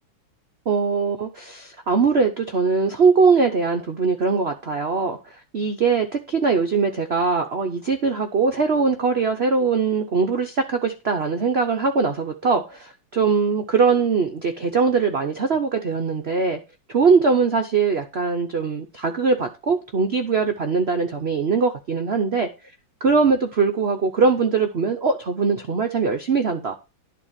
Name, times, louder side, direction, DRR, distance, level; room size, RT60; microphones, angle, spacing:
voice 1, 0.7-5.2 5.5-16.6 16.9-22.5 23.0-26.7, right 5 dB, 70° right, 6 dB, 0.6 m, -21 dB
10.5 x 3.9 x 7.3 m, 0.30 s
omnidirectional pair, 2.3 m